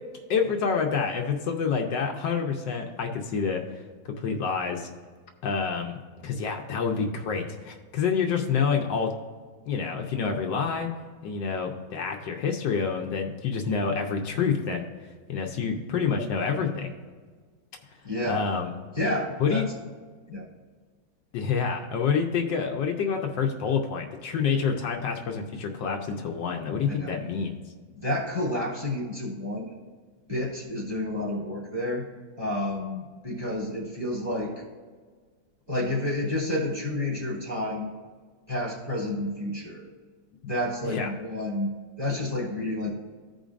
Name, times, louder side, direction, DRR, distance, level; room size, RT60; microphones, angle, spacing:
voice 1, 0.3-3.8 4.2-4.9 5.4-6.0 6.2-9.1 9.7-10.9 11.2-14.9 15.3-16.9 18.3-18.7 19.4-19.7 21.3-27.6 40.8-41.1, left 6 dB, 75° left, 2 dB, 1.4 m, -27 dB
voice 2, 18.0-18.5 18.9-19.7 20.3-20.5 26.9-27.1 27.9-29.7 30.3-32.0 32.4-34.5 35.7-37.9 38.5-39.9 40.4-42.9, left 1 dB, 15° right, -5 dB, 2.5 m, -30 dB
15.0 x 5.1 x 2.5 m, 1.5 s
omnidirectional pair, 2.0 m